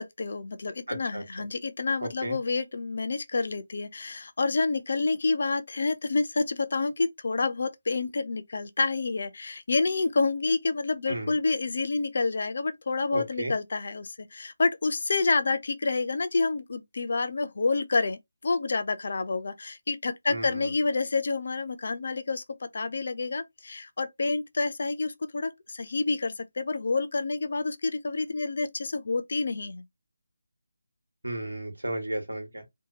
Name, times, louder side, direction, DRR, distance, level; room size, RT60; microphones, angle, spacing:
voice 1, 0.0-29.8, left 3 dB, 50° left, 0.4 m, -28 dB
voice 2, 0.9-1.2 2.0-2.4 11.1-11.3 13.1-13.5 20.3-20.7 31.2-32.6, right 1 dB, 75° right, 1.3 m, -33 dB
2.7 x 2.2 x 2.8 m
figure-of-eight pair, 155°, 0 cm